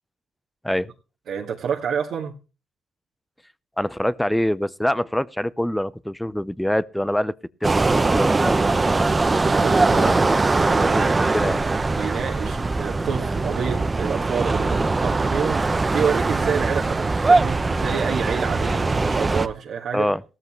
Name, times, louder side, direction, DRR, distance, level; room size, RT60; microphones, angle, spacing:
voice 1, 1.3-2.3 9.4-10.1 10.5-11.6 11.9-20.1, right 7 dB, 70° right, 1.8 m, -28 dB
voice 2, 3.8-7.3 7.6-9.1 9.9-10.4 10.8-11.1 11.3-11.6 19.9-20.2, equal, 5° left, 0.6 m, -25 dB
sound 1, 7.6-19.5, right 3 dB, 25° right, 0.9 m, -21 dB
16.0 x 13.5 x 3.0 m
cardioid pair, 90°, 0 cm